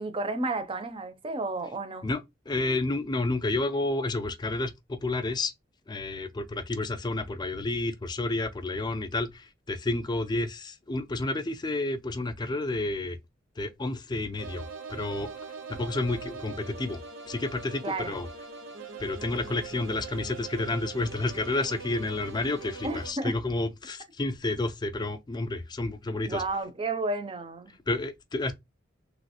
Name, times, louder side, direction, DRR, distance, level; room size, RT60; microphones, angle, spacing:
voice 1, 0.0-2.1 17.8-18.1 22.8-23.3 26.2-27.7, right 2 dB, 30° right, 0.5 m, -32 dB
voice 2, 2.0-5.5 5.9-13.2 13.6-15.3 15.7-17.0 17.3-18.3 19.0-26.4 27.9-28.5, left 2 dB, 20° left, 0.4 m, -30 dB
sound 1, 14.4-23.1, right 4 dB, 75° right, 0.6 m, -42 dB
3.1 x 2.8 x 2.8 m
head